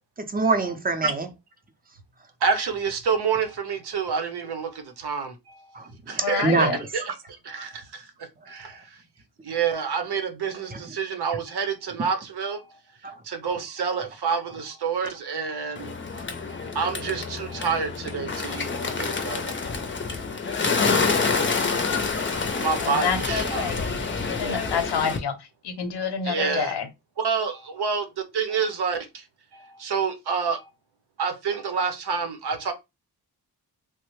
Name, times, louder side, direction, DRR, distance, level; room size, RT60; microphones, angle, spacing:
voice 1, 0.3-1.3 5.7-6.9 7.6-7.7 10.7-10.8 13.0-13.1, right 3 dB, 25° right, 0.5 m, -25 dB
voice 2, 2.4-5.3 6.1-7.1 7.4-8.0 8.5-8.8 9.4-12.6 13.2-15.9 16.5-19.7 20.5-20.7 22.5-23.7 26.2-26.8 27.2-29.2 29.5-30.6 31.2-32.7, right 5 dB, 80° right, 0.8 m, -28 dB
voice 3, 6.2-6.8 22.8-25.3 25.6-26.9, left 6 dB, 85° left, 0.7 m, -28 dB
Bird, 15.8-25.2, left 4 dB, 30° left, 0.5 m, -27 dB
3.2 x 2.1 x 3.0 m
wide cardioid pair, 135°, 39 cm